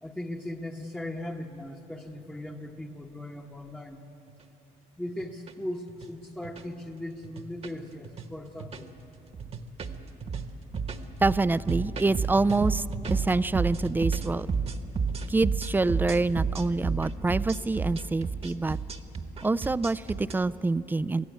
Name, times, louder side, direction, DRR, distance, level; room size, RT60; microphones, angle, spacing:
voice 1, 0.0-4.0 5.0-8.9, left 1 dB, 5° left, 0 dB, 1.0 m, -38 dB
sound 1, 4.3-4.4 5.1-5.5 5.9-6.1 6.4-6.6 7.2-7.8 8.0-8.3 8.6-9.0 9.3-20.3, right 5 dB, 35° right, 1.2 m, -31 dB
voice 2, 11.2-14.5 15.3-18.8 19.4-21.3, right 3 dB, 10° right, 17 dB, 0.4 m, -26 dB
23.0 x 15.0 x 8.4 m, 2.9 s
cardioid pair, 110°, 17 cm